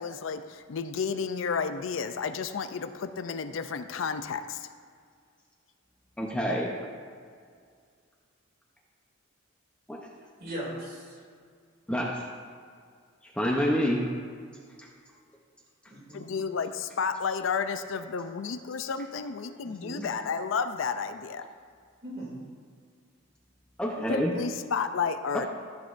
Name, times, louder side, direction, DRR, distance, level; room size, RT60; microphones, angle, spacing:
voice 1, 0.0-4.7 16.1-21.4 24.1-25.5, left 5 dB, 65° left, 9 dB, 0.4 m, -32 dB
voice 2, 6.2-6.7 9.9-10.1 11.9-12.2 13.3-14.0 23.8-24.3, equal, 5° left, -3 dB, 0.7 m, -27 dB
voice 3, 10.4-11.2 15.9-16.4 19.6-20.0 22.0-22.5, right 1 dB, 45° right, -4 dB, 2.5 m, -39 dB
14.0 x 7.4 x 2.6 m, 2.1 s
head